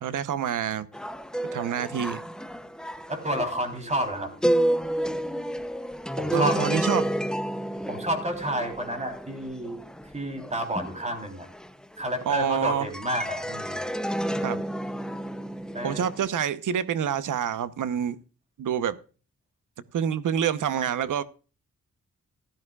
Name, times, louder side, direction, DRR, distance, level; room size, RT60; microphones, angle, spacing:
voice 1, 0.0-0.9 1.5-2.2 6.3-7.0 12.3-12.9 14.4-14.6 15.8-18.2 18.6-19.0 19.9-21.2, right 8 dB, 90° right, 0.9 m, -27 dB
sound 1, 0.9-12.5 12.9-16.3, equal, ahead, 0.6 m, -30 dB
voice 2, 3.1-4.3 6.2-6.7 7.9-11.5 12.0-13.9 15.7-16.0, equal, 20° right, 3.4 m, -30 dB
15.5 x 12.5 x 2.4 m
wide cardioid pair, 125°, 30 cm